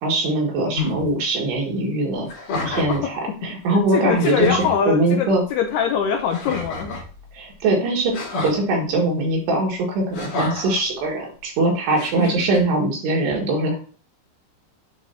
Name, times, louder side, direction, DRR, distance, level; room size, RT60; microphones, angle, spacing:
voice 1, 0.0-2.3 2.6-5.4 7.3-8.1 8.4-13.8, right 2 dB, 70° right, -1 dB, 3.9 m, -22 dB
sound 1, 0.7-1.0 2.3-3.1 3.8-3.9 4.2-4.7 6.3-7.1 8.1-8.6 10.1-10.8 11.9-12.6, left 2 dB, 50° left, 3.6 m, -29 dB
voice 2, 3.7-6.9, left 7 dB, 75° left, 3 dB, 2.5 m, -23 dB
10.5 x 4.5 x 2.8 m, 0.38 s
omnidirectional pair, 5.3 m